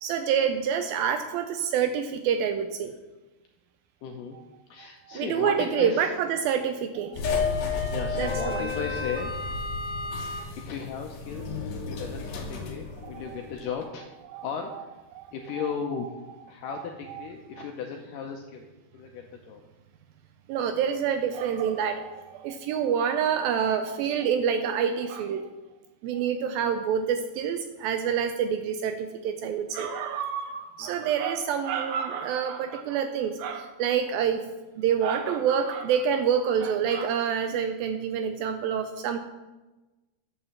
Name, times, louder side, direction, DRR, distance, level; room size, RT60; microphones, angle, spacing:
voice 1, 0.0-2.9 4.3-4.4 4.8-7.4 8.2-8.7 13.0-13.4 14.3-14.5 14.7-14.8 15.2-15.7 16.7-17.3 17.5-17.7 20.5-25.5 26.0-34.5 34.8-39.2, right 7 dB, 80° right, 7 dB, 2.1 m, -27 dB
voice 2, 4.0-4.4 4.7-6.1 7.9-9.3 10.2-11.6 11.9-14.1 14.4-14.9 15.3-16.1 16.5-18.7 18.9-19.6 30.9-31.1, left 6 dB, 80° left, 2 dB, 1.9 m, -36 dB
sound 1, 7.1-13.7, left 4 dB, 65° left, 1.8 m, -32 dB
8.9 x 5.5 x 7.0 m, 1.1 s
omnidirectional pair, 4.6 m